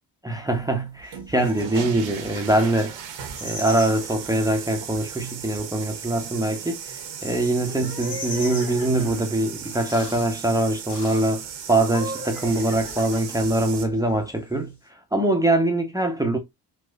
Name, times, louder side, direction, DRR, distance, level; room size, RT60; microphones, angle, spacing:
voice 1, 0.2-3.0 3.4-6.9 7.2-14.8 15.1-16.4, right 1 dB, 10° right, 0.7 m, -23 dB
sound 1, 1.0-13.8, right 7 dB, 65° right, 0.9 m, -37 dB
sound 2, 1.4-1.8 3.2-4.1 4.6-5.1 5.4-7.7 8.0-9.4 9.7-9.8 12.4-13.6 14.2-14.5, left 1 dB, 75° left, 1.8 m, -40 dB
sound 3, 7.6-9.3 9.9-10.3 10.9-11.3 11.8-13.5, left 2 dB, 55° left, 1.3 m, -38 dB
4.2 x 2.4 x 2.3 m
hypercardioid pair, 45°, 49 cm